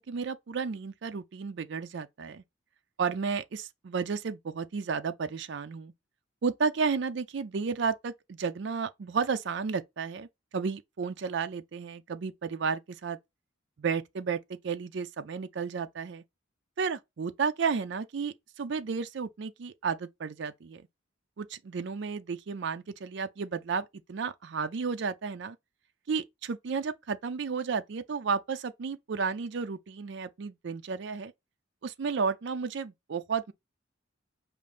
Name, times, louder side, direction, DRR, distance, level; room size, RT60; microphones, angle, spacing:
voice 1, 0.0-2.4 3.0-5.9 6.4-10.3 10.5-13.2 13.8-16.2 16.8-20.8 21.4-25.6 26.1-31.3 31.8-33.5, right 5 dB, 60° right, 0.4 m, -32 dB
5.1 x 2.5 x 3.3 m
head